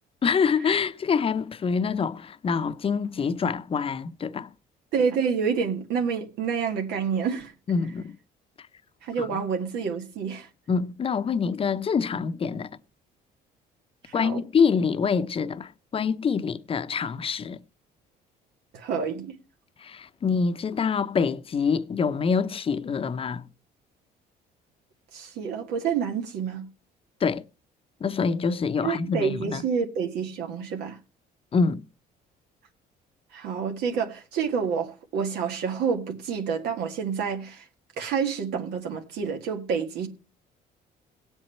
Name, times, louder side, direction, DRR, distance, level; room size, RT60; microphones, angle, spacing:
voice 1, 0.2-4.5 7.7-8.1 9.2-9.4 10.7-12.7 14.1-17.6 19.8-23.4 27.2-27.4 28.0-29.6 31.5-31.8, left 5 dB, 35° left, 0.8 m, -26 dB
voice 2, 4.9-7.5 9.0-10.5 14.0-14.4 18.7-19.4 25.1-26.7 28.8-31.0 33.3-37.7 38.0-40.1, right 6 dB, 80° right, 1.8 m, -28 dB
17.5 x 8.1 x 4.3 m
cardioid pair, 110°, 17 cm